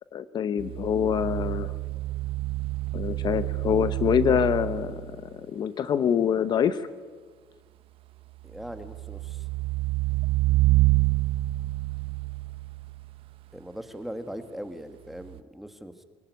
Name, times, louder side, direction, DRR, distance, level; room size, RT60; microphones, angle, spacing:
voice 1, 0.1-1.7 2.9-6.9, left 8 dB, 45° left, 13 dB, 0.8 m, -25 dB
sound 1, 0.6-5.2 8.6-13.2 15.3-15.4, right 19 dB, 70° right, 0.9 m, -27 dB
voice 2, 8.4-9.5 13.5-16.0, equal, ahead, 8 dB, 1.6 m, -40 dB
23.5 x 17.0 x 9.4 m, 1.5 s
cardioid pair, 135°, 10 cm